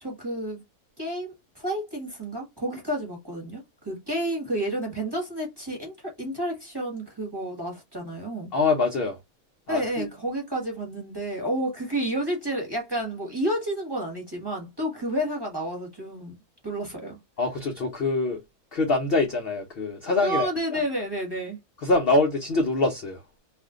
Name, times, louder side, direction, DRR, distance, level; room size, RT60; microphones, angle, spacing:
voice 1, 0.0-0.6 1.0-8.5 9.7-16.3 16.6-17.2 20.2-21.6, right 1 dB, 15° right, 1.1 m, -30 dB
voice 2, 8.5-9.2 9.7-10.1 17.4-18.4 18.7-20.5 21.8-23.2, left 3 dB, 55° left, 0.6 m, -24 dB
2.6 x 2.4 x 3.5 m
omnidirectional pair, 1.6 m